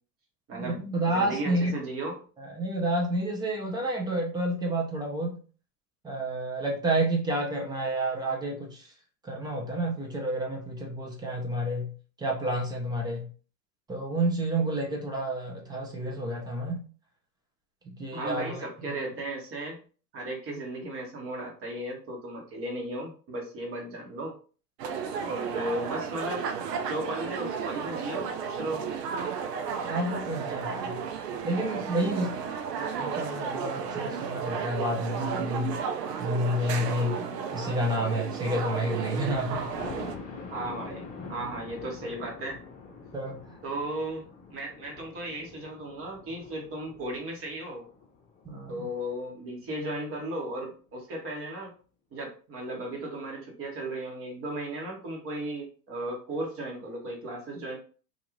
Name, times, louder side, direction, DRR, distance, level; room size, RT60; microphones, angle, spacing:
voice 1, 0.5-1.7 2.4-5.4 6.0-8.9 9.2-11.9 12.2-13.3 13.9-16.8 17.8-19.1 29.8-31.0 31.4-32.4 33.0-35.8 36.2-39.7 43.1-43.4 48.4-48.9, right 1 dB, 10° right, 0 dB, 0.5 m, -30 dB
voice 2, 1.1-2.2 18.1-19.8 20.1-24.3 25.2-26.5 26.8-28.9 40.5-42.6 43.6-47.9 48.7-51.7 52.1-57.8, right 1 dB, 30° right, 0 dB, 1.0 m, -35 dB
sound 1, 24.8-40.2, right 6 dB, 75° right, 0.6 m, -33 dB
Thunder, 39.3-49.1 49.6-49.7 50.1-50.2 50.5-50.6, left 4 dB, 20° left, 0.8 m, -45 dB
2.5 x 2.4 x 3.0 m, 0.39 s
hypercardioid pair, 100°, 48 cm